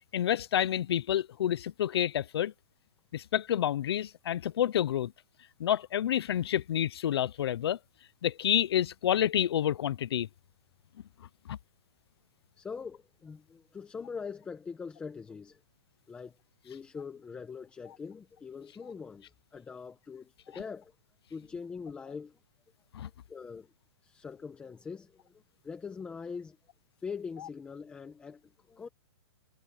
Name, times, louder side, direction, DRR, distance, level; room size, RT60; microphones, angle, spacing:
voice 1, 0.1-2.5 3.1-5.1 5.6-7.8 8.2-10.3 11.5-11.6 22.9-23.1, left 10 dB, 65° left, 0.6 m, -29 dB
voice 2, 12.6-15.6 16.1-16.3 16.6-20.9 21.3-22.4 23.3-23.7 24.0-26.6 27.0-28.4 28.7-28.9, left 5 dB, 10° left, 1.4 m, -42 dB
hypercardioid pair, 170°, 14 cm